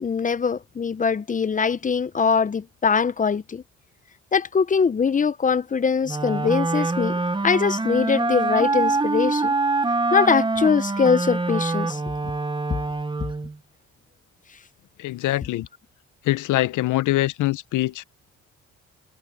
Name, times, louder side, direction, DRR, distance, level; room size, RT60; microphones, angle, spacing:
voice 1, 0.0-3.6 4.3-9.5 10.1-12.0, left 6 dB, 25° left, 0.6 m, -22 dB
Wind instrument woodwind instrument, 6.1-13.6, right 3 dB, 15° right, 1.1 m, -25 dB
voice 2, 15.0-15.7 16.3-18.0, left 16 dB, 80° left, 0.8 m, -23 dB
cardioid pair, 90°, 30 cm